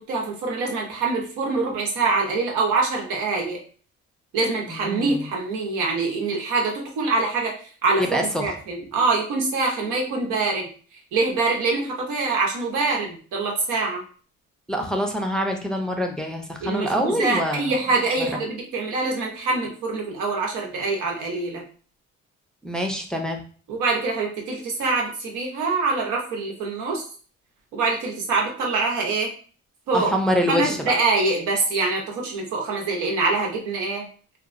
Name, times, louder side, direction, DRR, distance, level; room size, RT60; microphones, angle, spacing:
voice 1, 0.1-3.6 4.3-7.5 7.8-10.7 11.1-14.0 16.6-21.6 23.7-27.0 27.7-29.3 29.9-30.1 30.5-34.1, right 3 dB, 90° right, 0 dB, 0.8 m, -24 dB
voice 2, 4.7-5.3 8.0-8.5 14.7-17.7 22.6-23.4 29.9-30.9, equal, ahead, 3 dB, 0.4 m, -25 dB
2.8 x 2.3 x 2.5 m, 0.42 s
cardioid pair, 90°, 30 cm